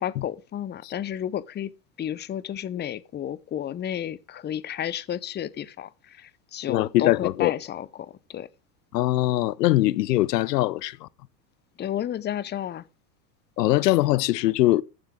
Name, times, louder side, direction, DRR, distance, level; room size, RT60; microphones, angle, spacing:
voice 1, 0.0-1.7 2.0-8.5 11.8-12.8, left 10 dB, 20° left, 0.8 m, -32 dB
voice 2, 6.7-7.5 8.9-11.1 13.6-14.8, left 16 dB, 75° left, 0.7 m, -22 dB
14.5 x 9.5 x 3.7 m
hypercardioid pair, 95°, 49 cm